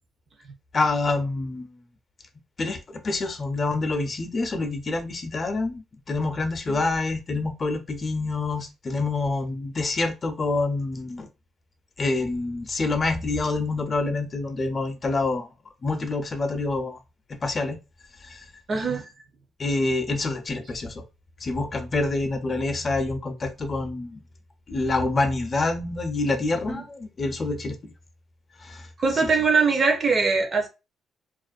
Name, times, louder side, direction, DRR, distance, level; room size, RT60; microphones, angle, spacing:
voice 1, 0.7-1.7 2.6-5.8 6.1-11.3 12.0-15.5 15.8-17.0 17.4-17.8 18.2-18.4 19.6-21.0 21.4-24.2 24.7-27.7 28.6-28.9, left 3 dB, 35° left, 0.5 m, -27 dB
voice 2, 18.7-19.1 26.7-26.8 29.0-30.7, right 4 dB, 40° right, 0.6 m, -22 dB
2.4 x 2.1 x 2.4 m
cardioid pair, 90°, 0 cm